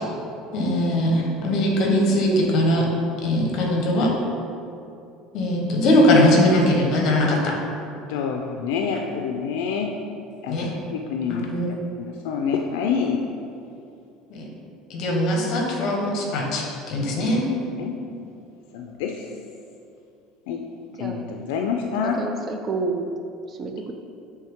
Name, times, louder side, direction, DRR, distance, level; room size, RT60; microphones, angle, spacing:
voice 1, 0.5-2.9 3.2-4.1 5.3-7.5 10.5-10.7 11.3-11.7 14.3-14.4 14.9-17.4, left 1 dB, 40° left, 0 dB, 1.0 m, -20 dB
voice 2, 8.1-10.0 10.4-11.5 12.0-13.3 17.8-18.0 18.7-19.3 20.5-20.6 21.0-22.1, left 6 dB, 80° left, 2 dB, 0.4 m, -27 dB
voice 3, 21.0-21.3 22.2-23.1 23.5-23.9, right 4 dB, 20° right, 4 dB, 0.3 m, -29 dB
8.4 x 3.2 x 3.5 m, 2.6 s
cardioid pair, 175°, 0 cm